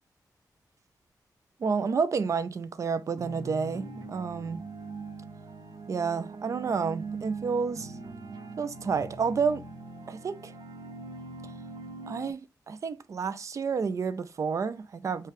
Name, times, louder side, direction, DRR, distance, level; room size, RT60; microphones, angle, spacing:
voice 1, 1.6-4.6 5.9-7.9 8.6-9.6 10.1-10.5 12.1-12.4 12.7-15.3, right 5 dB, 50° right, 0.4 m, -30 dB
sound 1, 3.2-12.3, right 3 dB, 75° right, 0.8 m, -42 dB
5.6 x 2.3 x 3.3 m
wide cardioid pair, 150°, 7 cm